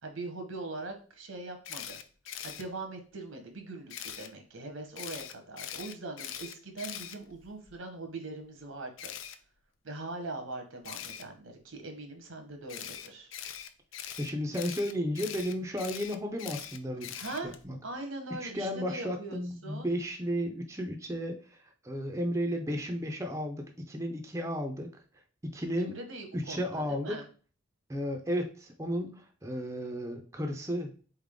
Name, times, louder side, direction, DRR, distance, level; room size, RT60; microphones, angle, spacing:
voice 1, 0.0-2.0 2.4-9.1 9.8-13.3 17.2-17.5 17.8-19.9 25.7-27.2, right 2 dB, 90° right, 5 dB, 1.2 m, -41 dB
Camera, 1.6-2.6 3.9-4.3 5.0-7.7 9.0-9.4 10.8-11.2 12.7-17.6, left 10 dB, 80° left, 0.5 m, -42 dB
voice 2, 14.2-17.2 17.4-17.8 18.4-24.9 25.4-26.0 26.3-27.2 27.9-31.1, equal, 15° right, 3 dB, 0.5 m, -34 dB
4.0 x 3.6 x 3.6 m, 0.39 s
head